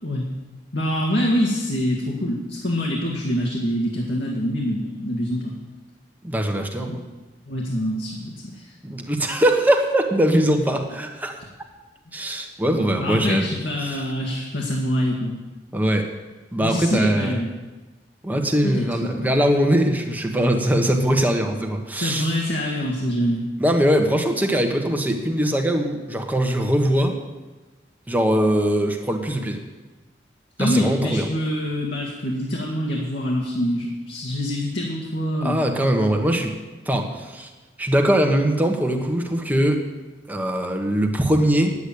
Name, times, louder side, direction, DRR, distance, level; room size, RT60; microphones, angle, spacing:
voice 1, 0.7-5.5 6.8-7.0 7.5-8.7 13.0-15.4 16.6-17.5 18.6-19.3 22.0-23.5 30.6-35.6, equal, 70° left, -3 dB, 1.8 m, -25 dB
voice 2, 6.2-7.0 8.8-11.4 12.1-13.4 13.8-14.0 15.7-16.1 16.5-17.4 18.2-22.3 23.6-27.2 28.1-29.6 30.6-31.3 35.4-36.5 36.9-37.5 37.8-39.8 40.3-41.8, right 1 dB, 10° right, 3 dB, 1.3 m, -21 dB
10.0 x 8.3 x 8.6 m, 1.2 s
head